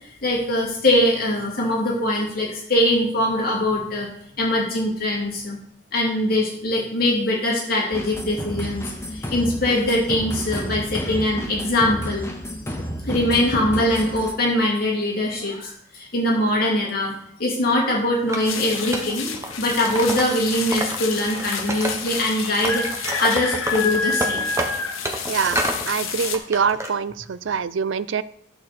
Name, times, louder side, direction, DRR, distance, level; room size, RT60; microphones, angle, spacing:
voice 1, 0.2-4.1 4.4-5.6 5.9-12.3 13.0-24.5, left 1 dB, 45° left, -2 dB, 2.7 m, -22 dB
sound 1, 7.9-14.3, equal, 15° left, 1.0 m, -31 dB
Wood, 18.3-21.0 21.3-22.3 22.6-25.8 26.2-26.9, right 1 dB, 15° right, 1.1 m, -29 dB
sound 2, 18.4-26.4, left 5 dB, 85° left, 1.1 m, -29 dB
voice 2, 25.3-25.6 25.9-28.2, right 6 dB, 70° right, 16 dB, 0.4 m, -24 dB
11.5 x 6.7 x 4.2 m, 0.70 s
head